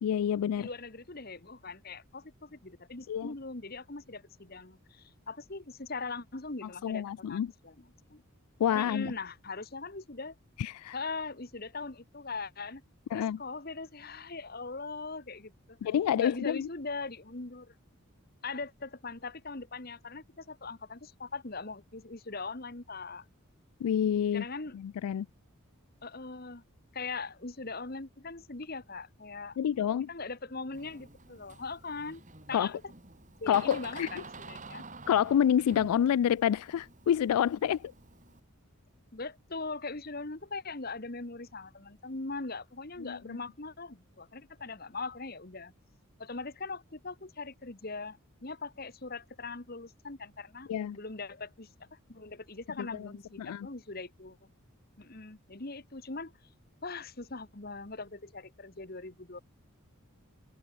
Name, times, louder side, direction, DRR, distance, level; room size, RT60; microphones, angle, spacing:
voice 1, 0.0-0.7 3.1-3.3 6.8-7.5 8.6-9.1 10.6-11.0 13.1-13.4 15.8-16.7 23.8-24.5 24.7-25.3 29.6-30.1 32.5-32.7 33.5-34.2 35.1-37.9 43.0-43.4 50.7-51.0 52.8-53.1 53.4-53.7, left 9 dB, 90° left, 0.3 m, -28 dB
voice 2, 0.6-8.2 8.7-10.3 10.9-12.8 13.1-15.8 16.2-17.7 18.4-23.2 24.3-24.8 26.0-26.6 26.9-29.8 30.1-32.2 32.5-32.8 33.4-34.8 39.1-45.7 46.2-54.4 55.0-56.3 56.8-59.4, left 3 dB, 45° left, 1.5 m, -41 dB
Door, 30.7-38.4, right 3 dB, 35° right, 3.4 m, -49 dB
open air
head